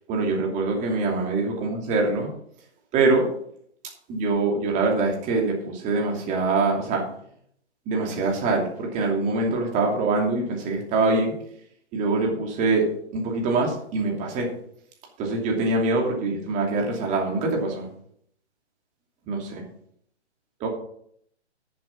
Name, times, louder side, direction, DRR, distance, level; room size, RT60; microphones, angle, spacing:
voice 1, 0.1-2.3 2.9-3.3 4.1-7.0 7.9-11.3 11.9-12.8 13.1-14.5 15.2-17.9 19.3-19.6 20.6-20.7, right 3 dB, 20° right, 1 dB, 2.7 m, -24 dB
9.6 x 7.3 x 6.1 m, 0.67 s
figure-of-eight pair, 135°, 35 cm